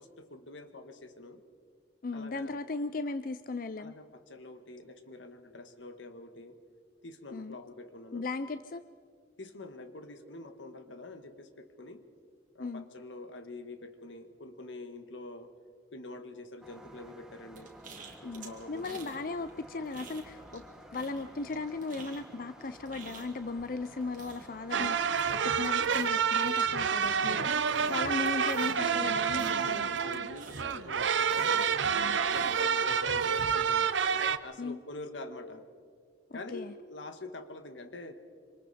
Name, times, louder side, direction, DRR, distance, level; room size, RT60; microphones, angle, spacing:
voice 1, 0.0-1.4 2.1-2.6 3.8-6.6 7.0-8.3 9.4-12.0 12.5-15.5 15.9-17.7 18.2-19.1 27.1-28.2 29.6-34.0 34.4-35.6 36.3-38.1, left 2 dB, 85° left, 8 dB, 1.6 m, -46 dB
voice 2, 2.0-3.9 7.3-7.6 8.1-8.8 12.6-12.8 18.2-20.6 20.9-25.0 25.3-27.5 27.9-29.9 34.6-34.8 36.3-36.7, left 3 dB, 45° left, 11 dB, 0.5 m, -37 dB
sound 1, 16.6-25.2, right 1 dB, 5° right, 1.4 m, -52 dB
sound 2, 17.6-19.2 19.5-20.7 20.9-30.9 31.3-33.7, right 4 dB, 45° right, 2.5 m, -50 dB
sound 3, 24.7-34.4, right 6 dB, 80° right, 0.7 m, -28 dB
26.0 x 26.0 x 4.3 m, 2.1 s
head